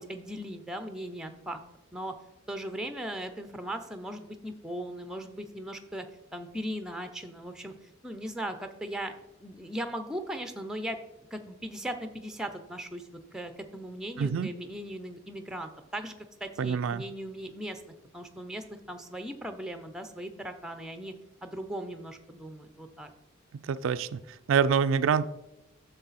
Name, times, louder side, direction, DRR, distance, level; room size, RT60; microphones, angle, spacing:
voice 1, 0.0-1.6 1.9-2.1 2.5-6.1 6.3-9.1 9.4-11.0 11.3-16.1 16.4-17.8 18.1-21.1 21.4-23.1, right 1 dB, 5° right, 7 dB, 0.6 m, -38 dB
voice 2, 14.2-14.5 16.6-17.0 23.5-25.3, right 6 dB, 65° right, 13 dB, 0.3 m, -26 dB
9.7 x 6.8 x 4.1 m, 0.95 s
head